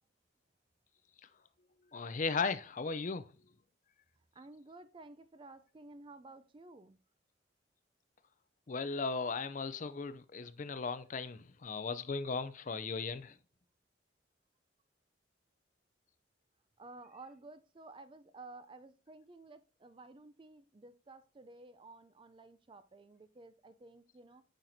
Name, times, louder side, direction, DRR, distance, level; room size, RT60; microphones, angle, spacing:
voice 1, 1.9-3.3 8.7-13.3, left 4 dB, 40° left, 0.4 m, -37 dB
voice 2, 4.3-7.0 16.8-24.4, right 2 dB, 25° right, 0.4 m, -54 dB
8.9 x 5.8 x 2.7 m
head